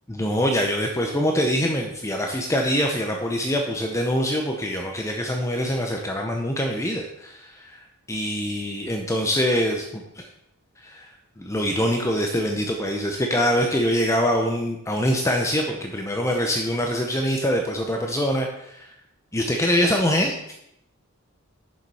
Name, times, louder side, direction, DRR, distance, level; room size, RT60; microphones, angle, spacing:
voice 1, 0.1-7.8 8.1-10.2 10.8-11.1 11.4-18.9 19.3-20.3, equal, 15° left, 2 dB, 0.8 m, -24 dB
7.2 x 6.7 x 4.8 m, 0.79 s
head